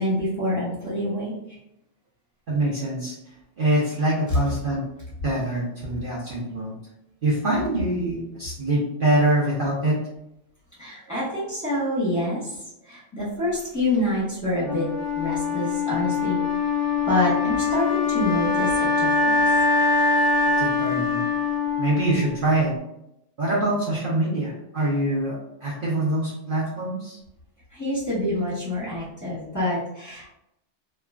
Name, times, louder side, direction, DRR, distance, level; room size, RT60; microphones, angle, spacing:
voice 1, 0.0-1.3 10.8-14.9 15.2-16.4 17.1-19.5 27.7-30.3, left 1 dB, 15° left, -9 dB, 1.0 m, -27 dB
voice 2, 2.5-3.2 3.6-4.8 5.2-6.8 7.2-10.0 20.6-21.2 21.8-22.7 23.4-27.2, right 1 dB, 50° right, -6 dB, 0.8 m, -24 dB
Wind instrument woodwind instrument, 14.6-22.6, left 4 dB, 55° left, 0.8 m, -23 dB
3.0 x 2.3 x 2.3 m, 0.84 s
omnidirectional pair, 1.2 m